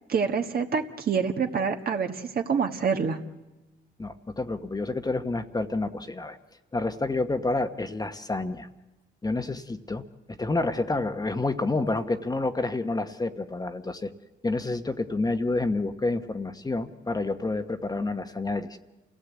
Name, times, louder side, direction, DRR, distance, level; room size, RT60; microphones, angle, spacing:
voice 1, 0.1-3.2, right 6 dB, 50° right, 4 dB, 1.5 m, -26 dB
voice 2, 4.0-6.4 6.7-8.7 9.2-10.0 10.3-14.1 14.4-18.8, left 2 dB, 20° left, 7 dB, 1.1 m, -29 dB
27.5 x 16.5 x 8.2 m, 1.1 s
cardioid pair, 90°, 20 cm